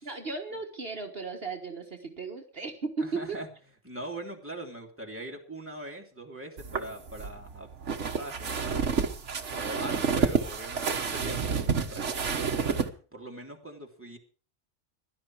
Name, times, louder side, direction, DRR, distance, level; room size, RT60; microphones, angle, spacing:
voice 1, 0.0-3.4, right 4 dB, 55° right, 3 dB, 1.7 m, -35 dB
voice 2, 3.0-3.5 3.8-7.7 8.2-8.8 9.5-12.8 13.1-14.2, right 1 dB, 10° right, 0 dB, 2.8 m, -41 dB
sound 1, 6.6-12.9, right 5 dB, 80° right, 1.6 m, -29 dB
16.5 x 12.0 x 4.7 m, 0.38 s
omnidirectional pair, 1.2 m